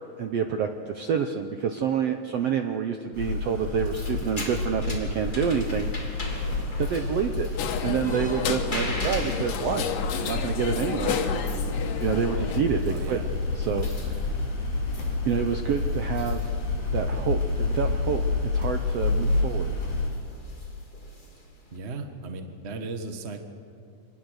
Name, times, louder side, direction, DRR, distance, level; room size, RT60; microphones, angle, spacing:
voice 1, 0.2-5.9 6.8-7.5 7.8-9.9 10.2-11.2 12.0-13.2 13.5-13.9 15.3-16.4 16.9-19.7, right 7 dB, 75° right, 6 dB, 1.5 m, -28 dB
sound 1, 3.1-20.1, left 3 dB, 65° left, 6.3 m, -29 dB
sound 2, 3.6-21.8, left 2 dB, 15° left, 2.8 m, -41 dB
sound 3, 7.6-12.6, left 7 dB, 80° left, 2.9 m, -31 dB
voice 2, 12.9-13.3 21.7-23.4, right 3 dB, 45° right, 5 dB, 0.8 m, -36 dB
25.5 x 19.5 x 6.5 m, 2.3 s
omnidirectional pair, 3.8 m